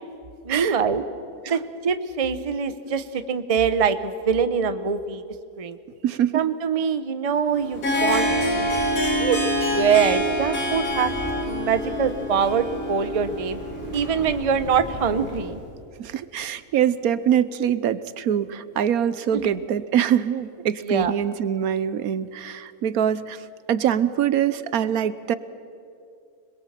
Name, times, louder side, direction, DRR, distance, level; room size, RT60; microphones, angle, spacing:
voice 1, 0.4-1.0 1.5-5.2 5.6-5.8 6.3-8.7 9.2-9.4 9.7-11.1 11.5-13.6 13.9-15.6 19.3-19.5 20.9-21.1, right 6 dB, 30° right, 11 dB, 0.8 m, -24 dB
voice 2, 6.0-6.4 16.0-23.4 23.7-25.3, right 9 dB, 75° right, 15 dB, 1.2 m, -23 dB
Harp, 7.5-15.3, equal, 65° left, 2.7 m, -26 dB
sound 1, 7.6-15.4, equal, 15° right, 8.0 m, -39 dB
26.0 x 21.0 x 7.4 m, 2.5 s
omnidirectional pair, 1.6 m